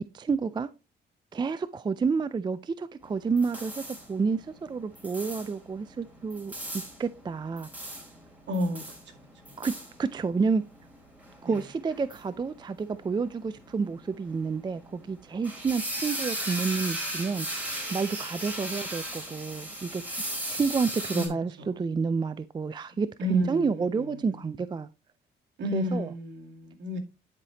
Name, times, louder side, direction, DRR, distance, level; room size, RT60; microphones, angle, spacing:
voice 1, 0.1-0.7 1.3-3.8 4.1-6.5 7.0-7.7 9.6-9.7 10.0-10.6 11.4-17.5 17.9-20.0 20.5-24.9 25.7-26.1, right 5 dB, 20° right, 0.4 m, -29 dB
sound 1, 3.0-21.3, right 1 dB, 5° right, 3.7 m, -38 dB
voice 2, 8.5-8.8 11.4-11.6 21.1-21.7 23.2-24.4 25.6-27.0, left 2 dB, 65° right, 2.1 m, -31 dB
10.5 x 4.9 x 2.9 m
cardioid pair, 90°, 20 cm